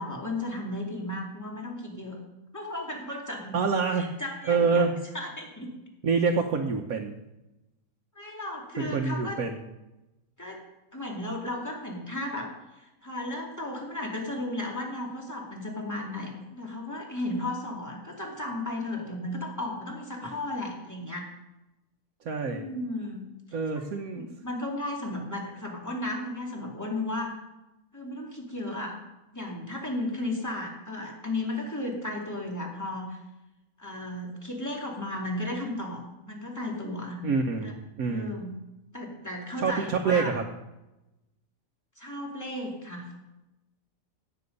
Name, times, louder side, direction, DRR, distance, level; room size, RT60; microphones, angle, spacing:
voice 1, 0.0-2.2 2.5-3.6 3.9-4.8 5.1-5.7 8.1-9.4 10.4-10.6 10.9-21.3 22.5-23.3 24.1-27.4 27.9-29.0 29.3-33.2 33.8-37.2 37.6-37.7 38.1-38.5 38.9-40.3 42.0-43.2, left 1 dB, 10° left, -1 dB, 2.4 m, -34 dB
voice 2, 3.5-4.1 4.4-4.9 6.0-7.1 8.8-9.6 22.2-22.7 23.5-24.3 37.2-38.4 39.6-40.4, right 5 dB, 75° right, 2 dB, 1.5 m, -26 dB
16.5 x 8.2 x 5.4 m, 0.98 s
omnidirectional pair, 1.5 m